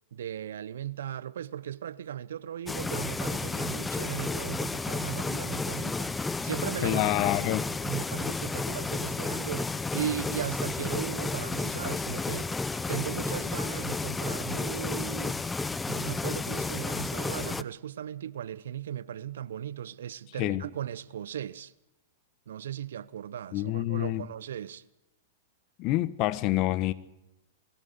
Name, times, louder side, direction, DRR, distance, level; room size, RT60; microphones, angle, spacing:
voice 1, 0.1-6.1 6.4-7.6 7.8-12.5 12.9-15.4 15.9-21.7 22.5-24.8, right 10 dB, 70° right, 0.8 m, -37 dB
sound 1, 2.7-17.6, left 3 dB, 10° left, 0.7 m, -32 dB
voice 2, 6.8-7.7 20.4-20.6 23.5-24.3 25.8-26.9, left 16 dB, 45° left, 1.1 m, -27 dB
22.5 x 15.0 x 8.0 m
hypercardioid pair, 105°, 0 cm